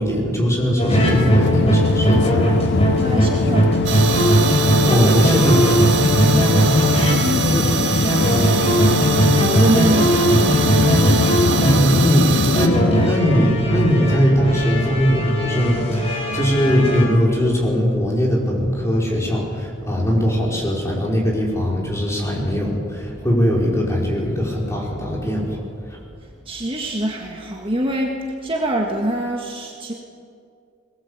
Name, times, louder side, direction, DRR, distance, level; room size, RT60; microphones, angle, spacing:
voice 1, 0.0-2.4 4.8-6.1 6.6-7.1 7.5-7.6 11.5-25.6 25.9-26.0, equal, 15° left, -3 dB, 5.0 m, -20 dB
sound 1, 0.8-17.0, right 1 dB, 30° left, 4.7 m, -19 dB
sound 2, 0.9-13.1, left 4 dB, 60° left, 0.5 m, -22 dB
voice 2, 3.0-4.0 6.3-6.6 7.1-9.0 9.5-10.6 12.2-12.3 26.5-29.9, right 1 dB, 25° right, 0 dB, 1.8 m, -25 dB
sound 3, 3.8-12.7, right 5 dB, 65° right, 1.9 m, -24 dB
21.5 x 19.5 x 8.2 m, 2.3 s
head